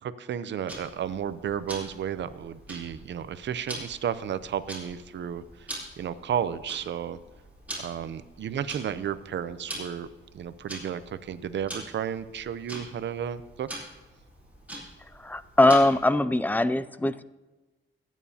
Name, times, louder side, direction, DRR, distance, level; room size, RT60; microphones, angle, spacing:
voice 1, 0.0-5.7 6.0-7.2 7.8-10.1 10.3-13.7, right 9 dB, 60° right, 14 dB, 0.6 m, -33 dB
Tick-tock, 0.7-16.1, right 1 dB, 5° right, 3.9 m, -44 dB
voice 2, 15.2-17.2, left 2 dB, 10° left, 14 dB, 0.3 m, -22 dB
21.5 x 9.2 x 2.8 m, 1.2 s
wide cardioid pair, 135°, 21 cm